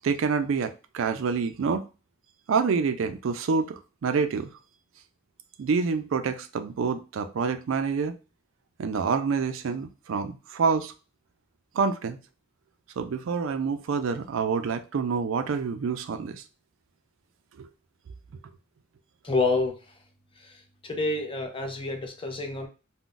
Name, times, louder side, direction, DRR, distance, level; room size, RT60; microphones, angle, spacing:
voice 1, 0.0-1.9 2.5-4.5 5.6-8.2 8.8-10.9 11.7-12.2 13.0-16.4 17.6-17.7, right 5 dB, 70° right, 0.4 m, -27 dB
voice 2, 19.2-19.8 20.4-20.6 20.8-22.7, left 3 dB, 25° left, 0.5 m, -28 dB
2.4 x 2.1 x 3.8 m
head